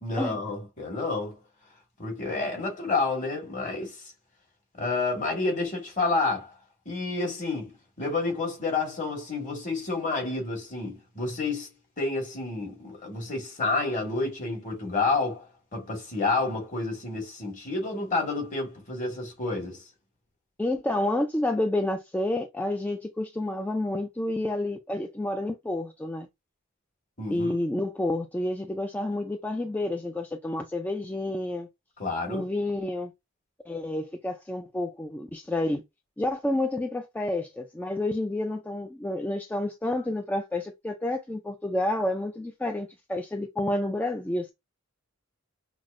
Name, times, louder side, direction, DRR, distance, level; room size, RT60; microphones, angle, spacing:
voice 1, 0.0-1.4 2.0-3.9 4.8-6.5 6.8-7.7 8.0-11.7 12.0-15.5 15.7-19.8 27.2-27.5 32.0-32.5, left 3 dB, 40° left, 1.6 m, -29 dB
voice 2, 20.6-26.3 27.3-31.7 32.3-33.1 33.7-35.8 36.2-44.5, left 1 dB, 10° left, 0.3 m, -29 dB
5.8 x 2.0 x 2.5 m
head